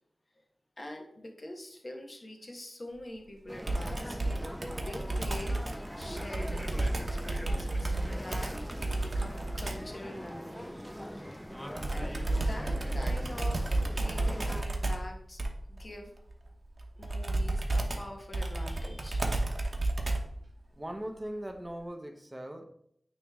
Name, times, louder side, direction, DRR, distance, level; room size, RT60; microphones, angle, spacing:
voice 1, 0.8-4.2 4.8-5.6 5.9-8.5 8.9-10.7 11.2-15.4 15.7-16.1 16.9-19.5, left 1 dB, 40° left, 2 dB, 1.1 m, -45 dB
sound 1, 3.5-14.6, equal, ahead, 0.4 m, -42 dB
Computer keyboard, 3.7-9.9 11.8-20.4, right 2 dB, 40° right, 0.9 m, -32 dB
voice 2, 20.7-22.7, right 1 dB, 15° right, 4 dB, 0.8 m, -40 dB
9.1 x 3.1 x 3.5 m, 0.70 s
wide cardioid pair, 85°, 0 cm